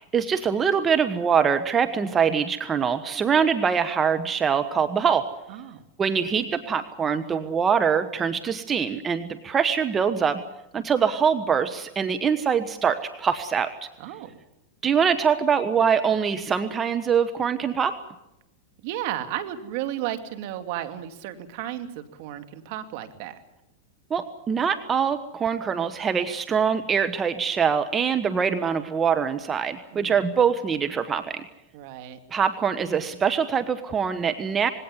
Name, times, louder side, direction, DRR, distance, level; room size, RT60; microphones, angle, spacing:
voice 1, 0.0-5.3 6.0-10.4 10.7-13.7 14.8-18.0 24.1-31.4 32.3-34.7, right 7 dB, 25° right, 10 dB, 1.3 m, -23 dB
voice 2, 5.5-5.8 6.4-6.5 14.0-14.3 18.8-23.4 29.9-30.2 31.7-32.2, right 12 dB, 60° right, 8 dB, 2.4 m, -33 dB
20.5 x 17.5 x 9.9 m, 0.92 s
hypercardioid pair, 110°, 0 cm